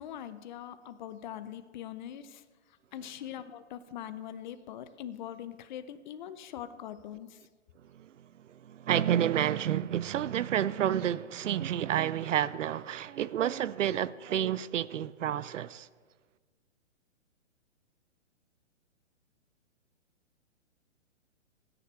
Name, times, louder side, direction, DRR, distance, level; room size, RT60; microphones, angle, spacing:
voice 1, 0.0-7.4, left 10 dB, 40° left, 0.7 m, -42 dB
voice 2, 7.9-15.9, right 10 dB, 80° right, 0.6 m, -30 dB
18.0 x 9.9 x 3.2 m
hypercardioid pair, 140°, 37 cm